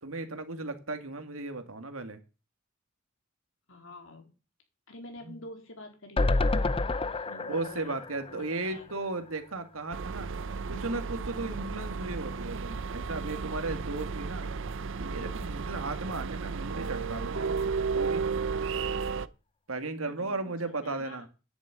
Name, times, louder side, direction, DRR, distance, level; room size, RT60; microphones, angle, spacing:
voice 1, 0.0-2.2 5.2-5.3 7.5-10.3 10.7-14.5 15.0-17.6 18.0-18.3 19.7-21.3, right 2 dB, 80° right, 8 dB, 2.0 m, -36 dB
voice 2, 3.7-4.4 4.9-8.9 20.1-21.3, left 1 dB, 70° left, 3 dB, 3.9 m, -48 dB
sound 1, 6.2-9.4 9.8-9.9 10.1-10.2, left 2 dB, 25° left, 0.5 m, -29 dB
sound 2, 9.9-19.3, right 5 dB, 65° right, 0.7 m, -33 dB
10.5 x 7.3 x 9.2 m, 0.33 s
head